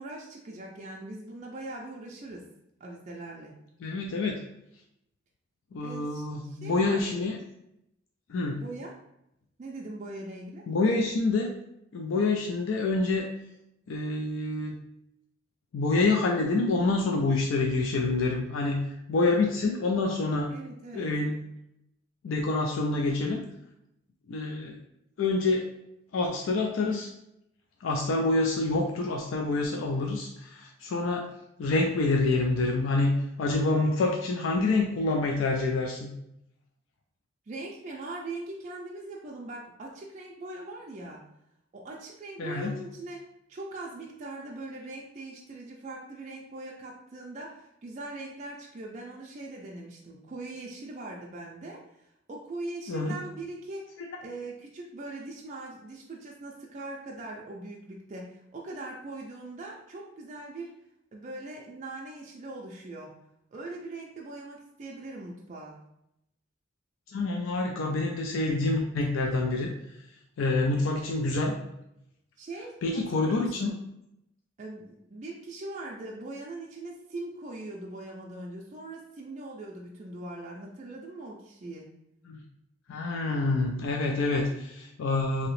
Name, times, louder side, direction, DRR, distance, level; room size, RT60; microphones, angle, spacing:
voice 1, 0.0-2.4 2.8-3.5 5.8-7.3 8.6-8.9 9.6-10.6 20.5-21.1 37.5-41.2 41.7-60.8 61.1-63.2 63.5-65.8 72.4-73.8 74.6-81.9, right 2 dB, 35° right, -2 dB, 0.4 m, -41 dB
voice 2, 3.8-4.4 5.7-7.4 8.3-8.6 10.7-11.5 11.9-13.2 13.9-14.7 15.7-18.8 19.1-20.5 20.9-21.4 22.2-23.4 24.3-24.8 25.2-25.6 26.1-27.1 27.8-31.3 31.6-36.1 42.4-42.7 52.9-53.1 67.1-69.7 70.4-71.5 72.8-73.8 82.3-82.4 82.9-85.5, left 3 dB, 80° left, 1 dB, 0.4 m, -27 dB
2.8 x 2.8 x 3.0 m, 0.82 s
head